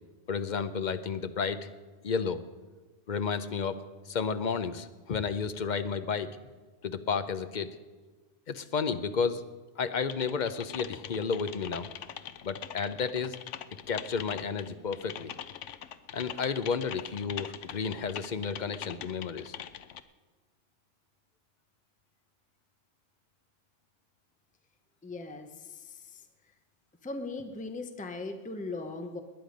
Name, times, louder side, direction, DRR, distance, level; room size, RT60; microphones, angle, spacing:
voice 1, 0.3-1.6 2.0-2.4 3.1-3.8 4.1-6.4 6.8-7.8 8.5-9.4 9.8-11.9 12.4-13.4 13.9-15.3 16.1-19.6, left 5 dB, 45° left, 11 dB, 0.7 m, -32 dB
Typing, 10.1-20.0, left 10 dB, 75° left, 0.9 m, -42 dB
voice 2, 25.0-26.5 27.0-29.2, left 3 dB, 5° left, 6 dB, 0.8 m, -39 dB
20.0 x 10.0 x 5.2 m, 1.3 s
omnidirectional pair, 1.3 m